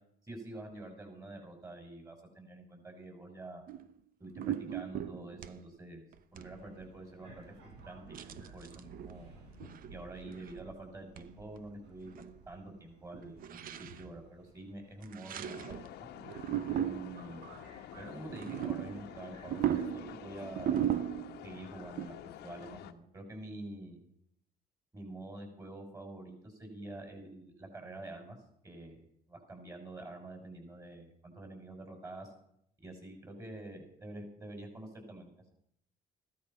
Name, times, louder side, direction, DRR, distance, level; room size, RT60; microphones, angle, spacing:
voice 1, 0.3-3.6 4.2-6.1 6.3-7.4 7.8-8.2 8.5-9.3 9.9-15.8 16.8-17.5 18.0-20.9 21.4-22.2 22.4-24.0 24.9-28.4 28.6-29.0 29.3-32.3 32.8-35.3, right 2 dB, 20° right, 4 dB, 6.4 m, -47 dB
sound 1, 3.7-3.9 4.3-5.6 6.1-6.5 6.8-6.9 8.1-9.2 9.7-10.0 10.3-10.6 11.2-11.3 11.6-11.7 11.9-12.3 12.5-12.6 13.4-14.0 15.0-15.9 16.2-17.3 18.2-21.5 22.0-22.1, right 10 dB, 60° right, 0.9 m, -36 dB
Subway metro underground, 6.4-20.0, right 3 dB, 75° right, 4.6 m, -57 dB
sound 2, 15.4-22.9, left 11 dB, 80° left, 1.3 m, -49 dB
15.5 x 12.5 x 5.8 m, 0.70 s
cardioid pair, 110°, 17 cm